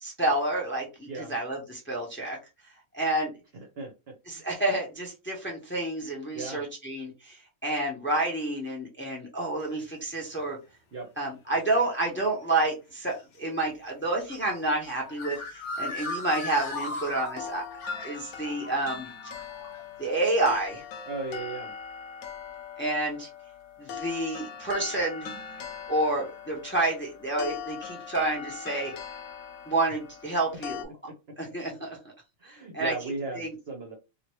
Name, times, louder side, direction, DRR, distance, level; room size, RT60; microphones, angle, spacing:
voice 1, 0.0-2.4 2.9-3.3 4.3-7.4 7.6-10.6 11.2-15.4 15.8-17.6 18.0-19.1 20.0-20.8 22.8-23.3 23.8-25.3 25.9-28.9 29.7-30.9 31.4-31.9 32.4-32.9 33.4-33.5, right 2 dB, 10° left, -1 dB, 0.7 m, -29 dB
voice 2, 3.5-3.9 6.3-6.6 10.9-11.1 21.1-21.7 32.4-33.9, right 3 dB, 55° right, 2 dB, 0.9 m, -36 dB
sound 1, 9.6-9.8 11.3-11.4 12.2-12.4 13.1-13.2 14.1-19.8, left 3 dB, 60° left, 1.0 m, -37 dB
sound 2, 17.4-30.8, left 7 dB, 85° left, 1.0 m, -41 dB
2.9 x 2.5 x 3.0 m, 0.27 s
omnidirectional pair, 1.5 m